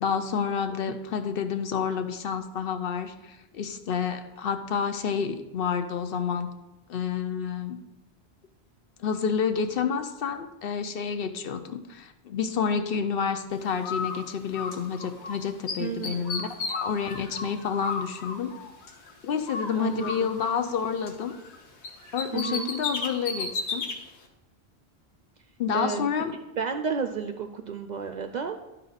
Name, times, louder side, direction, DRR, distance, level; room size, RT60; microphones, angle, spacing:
voice 1, 0.0-6.5 6.9-7.8 9.0-18.5 19.2-21.3 22.1-23.8 25.6-26.3, left 6 dB, 65° left, 8 dB, 0.8 m, -29 dB
Bird, 13.8-15.4 15.7-19.1 19.5-21.6 21.8-24.0, left 4 dB, 85° left, 1.3 m, -34 dB
voice 2, 15.8-16.3 19.7-20.3 22.3-22.7 25.7-26.1 26.6-28.6, right 6 dB, 55° right, 6 dB, 0.5 m, -31 dB
12.0 x 4.2 x 4.0 m, 1.0 s
omnidirectional pair, 1.1 m